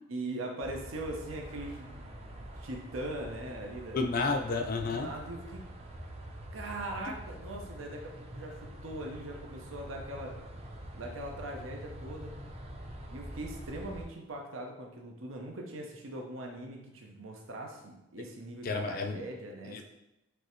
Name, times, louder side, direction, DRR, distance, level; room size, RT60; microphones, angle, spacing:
voice 1, 0.1-4.0 4.8-5.6 6.5-10.4 10.9-12.4 13.1-19.8, right 1 dB, 80° right, 1 dB, 0.8 m, -41 dB
sound 1, 0.6-14.1, equal, 30° right, 0.5 m, -45 dB
voice 2, 3.9-5.1 18.6-19.2 19.7-19.8, left 3 dB, 45° left, 4 dB, 0.4 m, -31 dB
5.2 x 3.3 x 3.1 m, 0.91 s
head